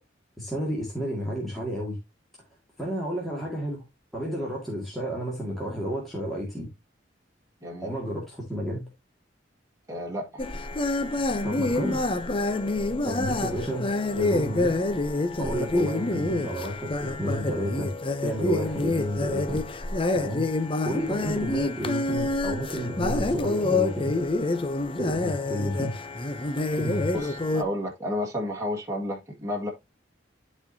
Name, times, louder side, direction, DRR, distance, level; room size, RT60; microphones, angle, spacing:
voice 1, 0.4-2.0 2.8-3.8 4.1-6.7 7.8-8.9 11.4-12.0 13.0-14.8 15.4-19.6 20.1-20.5 20.8-24.2 25.0-25.9 26.7-27.1, equal, ahead, 2.0 m, -31 dB
voice 2, 7.6-7.9 9.9-10.4 27.1-29.7, left 1 dB, 15° right, 1.9 m, -31 dB
sound 1, 10.4-27.6, left 2 dB, 30° left, 0.6 m, -27 dB
12.0 x 4.4 x 2.7 m
head